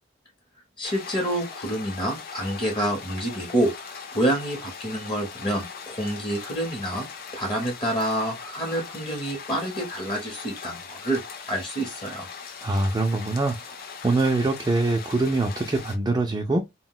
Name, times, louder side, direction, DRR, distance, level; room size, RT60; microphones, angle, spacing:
sound 1, 0.8-16.0, left 6 dB, 55° left, 0.5 m, -40 dB
voice 1, 0.8-7.1 7.3-11.2 11.5-12.3, right 1 dB, 25° left, 0.8 m, -27 dB
voice 2, 12.6-13.6 14.0-16.6, right 2 dB, 20° right, 0.4 m, -23 dB
2.2 x 2.1 x 3.7 m
head